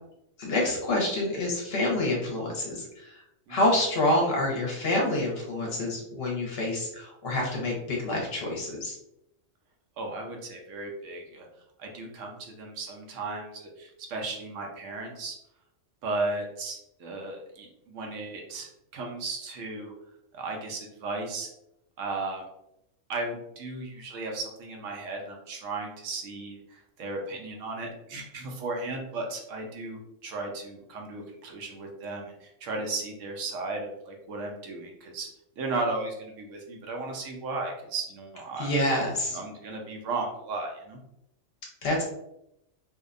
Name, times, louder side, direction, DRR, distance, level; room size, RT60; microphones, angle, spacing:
voice 1, 0.4-3.2 3.5-9.0 38.6-39.4 41.8-42.0, left 1 dB, 60° left, -2 dB, 0.8 m, -27 dB
voice 2, 10.0-11.5 11.8-15.4 16.0-19.9 20.3-21.5 22.0-22.4 23.1-35.3 35.6-38.7 39.3-41.0, right 3 dB, 80° right, 1 dB, 0.9 m, -35 dB
2.6 x 2.1 x 2.4 m, 0.82 s
omnidirectional pair, 1.3 m